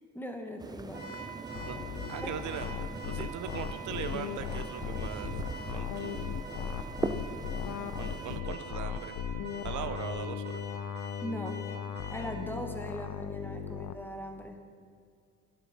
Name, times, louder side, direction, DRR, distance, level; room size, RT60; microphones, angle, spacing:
voice 1, 0.1-1.3 2.2-2.3 11.2-11.6 12.1-14.6, equal, 5° left, 4 dB, 1.1 m, -39 dB
sound 1, 0.6-8.4, right 3 dB, 15° right, 0.4 m, -41 dB
Car / Alarm, 0.9-12.4, right 3 dB, 35° right, 1.9 m, -45 dB
sound 2, 1.5-13.9, left 8 dB, 85° left, 0.6 m, -38 dB
voice 2, 2.1-5.4 5.7-6.4 8.0-9.2 9.6-10.6, right 9 dB, 75° right, 10 dB, 0.6 m, -40 dB
10.5 x 7.7 x 5.2 m, 2.2 s
cardioid pair, 90°, 30 cm